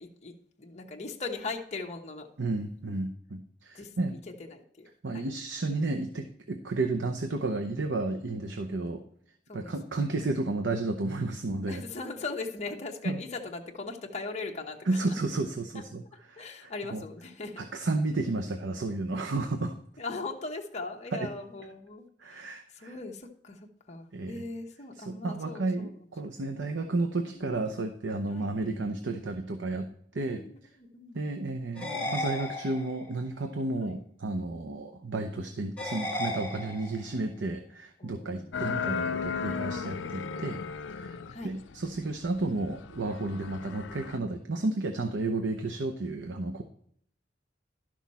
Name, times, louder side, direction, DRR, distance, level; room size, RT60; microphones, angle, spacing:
voice 1, 0.0-2.3 3.7-3.9 4.3-4.9 5.1-5.2 9.5-10.2 11.7-15.2 15.7-15.8 16.4-17.7 20.0-26.1 27.3-27.7 28.3-28.5 30.3-31.2 33.8-34.0 38.0-38.7 39.3-39.7 41.3-41.5, left 3 dB, 40° left, 1 dB, 1.0 m, -40 dB
voice 2, 2.4-4.2 5.0-9.0 9.5-11.8 13.0-13.2 14.9-16.0 16.3-17.0 17.6-19.7 21.1-21.3 22.2-23.0 24.1-24.4 25.0-30.4 31.1-40.6 40.9-41.1 41.4-46.6, right 2 dB, 70° right, 5 dB, 0.7 m, -32 dB
sound 1, 31.8-33.2 35.8-37.2, left 1 dB, 10° left, 1.7 m, -35 dB
sound 2, 38.5-44.2, left 6 dB, 85° left, 0.5 m, -36 dB
12.0 x 6.2 x 4.2 m, 0.66 s
head